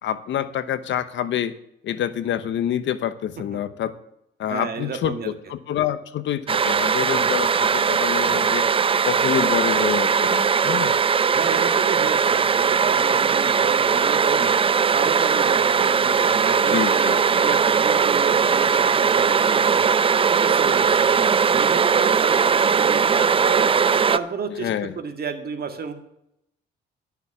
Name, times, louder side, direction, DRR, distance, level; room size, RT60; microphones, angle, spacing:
voice 1, 0.0-1.5 1.8-4.0 4.4-8.7 9.0-11.0 16.6-17.5 22.4-22.5 24.6-24.9, left 10 dB, 70° left, 13 dB, 0.9 m, -27 dB
voice 2, 4.5-5.3 11.3-14.6 14.9-17.1 17.4-19.9 20.3-23.7 24.1-24.7 25.0-25.9, right 5 dB, 50° right, 6 dB, 2.0 m, -31 dB
sound 1, 6.5-24.2, right 6 dB, 30° right, 0.4 m, -19 dB
12.0 x 7.0 x 6.9 m, 0.78 s
cardioid pair, 90°, 20 cm